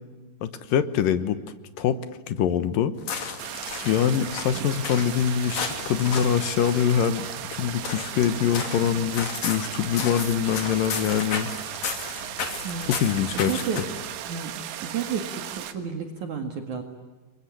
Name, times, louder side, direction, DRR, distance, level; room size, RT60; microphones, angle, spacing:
voice 1, 0.4-1.4 1.8-2.0 2.3-2.9 3.9-7.3 7.5-11.5 12.8-13.6, left 9 dB, 70° left, 12 dB, 2.3 m, -24 dB
sound 1, 2.9-14.1, left 5 dB, 45° left, 3.6 m, -35 dB
sound 2, 3.4-15.7, right 11 dB, 90° right, 3.8 m, -36 dB
voice 2, 13.3-13.8 14.2-16.8, right 7 dB, 50° right, 5 dB, 2.9 m, -32 dB
28.5 x 24.0 x 8.7 m, 1.2 s
omnidirectional pair, 5.1 m